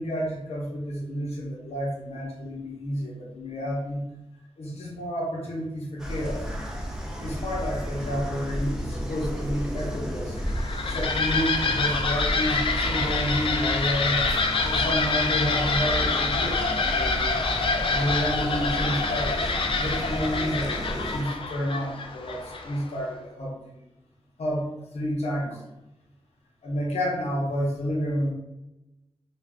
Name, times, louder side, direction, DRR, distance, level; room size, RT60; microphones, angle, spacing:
voice 1, 0.0-4.0 4.6-6.5 7.2-10.4 10.9-14.3 14.6-17.4 17.9-19.5 19.8-23.8 24.4-25.6 26.6-28.3, equal, 85° left, -4 dB, 0.7 m, -30 dB
sound 1, 6.0-21.2, equal, 5° right, 0.5 m, -32 dB
sound 2, 10.4-22.9, left 4 dB, 55° left, 0.4 m, -27 dB
2.4 x 2.2 x 3.4 m, 0.96 s
wide cardioid pair, 80°, 11 cm